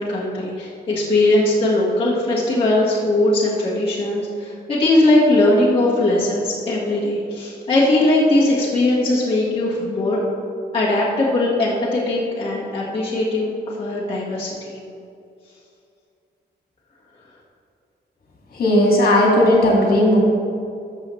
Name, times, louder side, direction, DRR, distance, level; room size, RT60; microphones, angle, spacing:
voice 1, 0.0-10.2 10.7-14.8, left 2 dB, 30° left, -7 dB, 1.6 m, -19 dB
voice 2, 18.5-20.2, left 1 dB, 55° left, -2 dB, 2.2 m, -15 dB
13.0 x 6.8 x 3.2 m, 2.5 s
wide cardioid pair, 135°, 18 cm